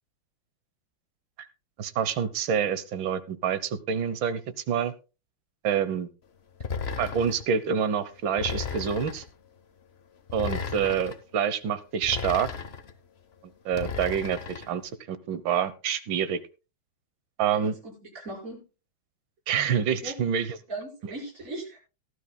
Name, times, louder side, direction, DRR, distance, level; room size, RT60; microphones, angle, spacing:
voice 1, 1.8-4.4 4.7-4.9 5.6-6.1 7.0-9.2 10.3-12.5 13.7-14.8 15.1-16.4 17.4-17.7 19.5-20.6, right 8 dB, 70° right, 14 dB, 1.7 m, -27 dB
sound 1, 6.6-7.5 8.4-9.3 10.3-11.2 12.0-12.9 13.7-14.7, left 6 dB, 45° left, 0.8 m, -34 dB
voice 2, 17.5-18.6 20.0-20.2 20.7-21.8, right 2 dB, 40° right, -2 dB, 5.8 m, -38 dB
18.5 x 12.0 x 2.2 m, 0.31 s
omnidirectional pair, 2.3 m